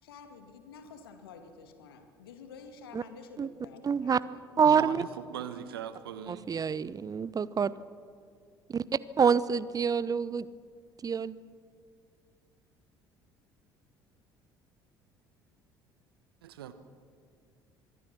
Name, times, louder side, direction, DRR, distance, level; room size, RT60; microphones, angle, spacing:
voice 1, 0.0-4.4, left 5 dB, 75° left, 6 dB, 2.3 m, -50 dB
voice 2, 3.8-4.2 4.6-5.0 6.3-7.7 8.7-8.8 9.2-10.5 11.0-11.4, right 6 dB, 30° right, 19 dB, 0.8 m, -26 dB
voice 3, 4.6-6.5 16.4-16.7, right 9 dB, 75° right, 11 dB, 1.3 m, -40 dB
25.0 x 21.5 x 6.2 m, 2.2 s
figure-of-eight pair, 55°, 12 cm